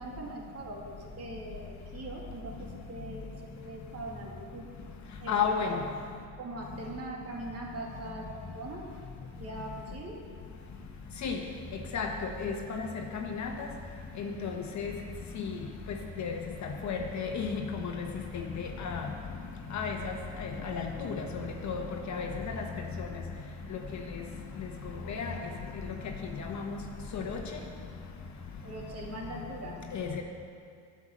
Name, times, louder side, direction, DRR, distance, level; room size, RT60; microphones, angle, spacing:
voice 1, 0.0-4.7 5.2-5.8 6.4-8.8 9.4-10.2 28.6-29.9, right 2 dB, 35° right, -1 dB, 2.4 m, -41 dB
voice 2, 5.3-5.7 11.2-11.4 11.9-12.1 12.4-12.9 13.1-13.5 14.2-14.9 15.3-15.5 16.2-16.4 16.8-17.6 18.6-19.1 19.7-20.1 20.4-21.8 22.1-22.3 22.6-22.7 23.0-23.1 25.1-25.4 26.4-26.7 27.1-27.4 29.9-30.2, left 6 dB, 45° left, 3 dB, 1.3 m, -33 dB
9.8 x 6.1 x 7.5 m, 2.2 s
supercardioid pair, 85°, 39 cm